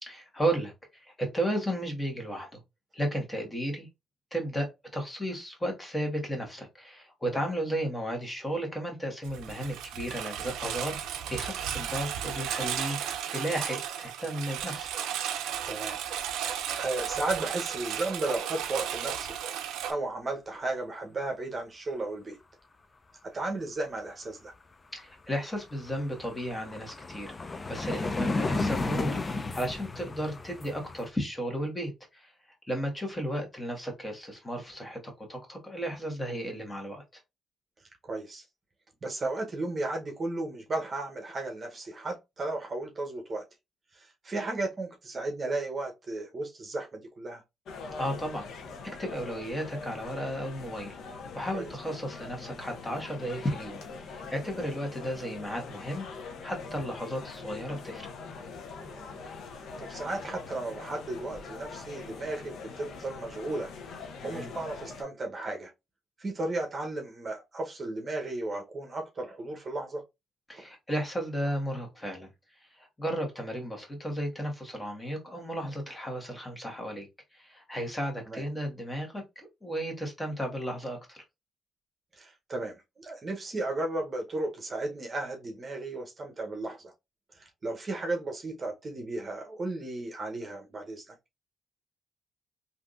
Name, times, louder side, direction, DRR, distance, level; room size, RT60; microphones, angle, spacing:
voice 1, 0.1-2.6 2.9-3.9 4.3-13.0 13.3-14.9 24.9-32.3 32.7-37.2 48.0-48.5 48.8-56.1 56.4-58.0 64.2-64.5 70.5-72.3 72.6-81.2, equal, 15° left, 1.4 m, -34 dB
Engine, 9.2-19.9, right 9 dB, 90° right, 0.4 m, -34 dB
voice 2, 15.7-16.0 16.5-19.4 19.8-22.4 23.3-24.5 27.9-28.1 38.0-38.4 39.0-43.4 43.9-47.4 51.5-51.7 54.6-54.7 58.8-59.2 59.5-63.7 64.2-65.7 66.2-70.0 70.5-70.7 78.3-78.4 82.1-86.9 87.3-91.1, right 2 dB, 35° right, 0.8 m, -34 dB
sound 1, 25.0-25.1 25.4-31.1, left 3 dB, 30° left, 0.4 m, -33 dB
sound 2, 47.7-65.0, left 4 dB, 75° left, 0.7 m, -43 dB
3.5 x 2.6 x 2.4 m
cardioid pair, 90°, 0 cm